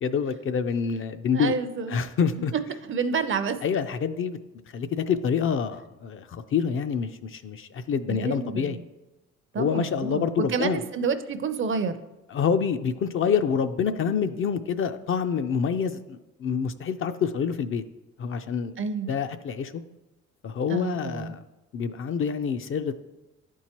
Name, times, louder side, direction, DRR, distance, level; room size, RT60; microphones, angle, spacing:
voice 1, 0.0-1.5 1.9-2.5 3.6-4.4 4.7-8.8 9.6-10.8 12.3-17.8 18.2-18.7 19.1-19.7 20.4-21.4 21.7-23.0, left 6 dB, 45° left, 9 dB, 0.4 m, -27 dB
voice 2, 1.3-2.0 2.9-3.6 8.1-8.8 9.5-11.9 18.8-19.1 20.7-21.3, right 5 dB, 40° right, 10 dB, 0.5 m, -29 dB
11.0 x 4.6 x 2.9 m, 1.0 s
cardioid pair, 90°, 30 cm